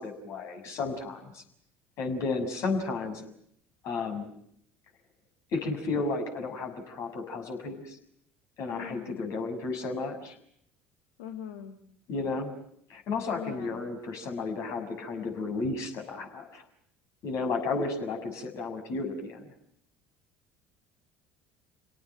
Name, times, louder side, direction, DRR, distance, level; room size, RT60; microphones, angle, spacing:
voice 1, 0.0-1.4 2.0-3.2 3.8-4.3 5.5-8.0 8.6-10.4 12.1-12.5 12.9-16.6 17.2-19.5, left 3 dB, 55° left, 4 dB, 6.7 m, -33 dB
voice 2, 8.7-9.3 11.2-11.8 13.3-13.8, left 9 dB, 75° left, 5 dB, 2.1 m, -41 dB
29.5 x 18.0 x 9.0 m, 0.70 s
hypercardioid pair, 65°, 6 cm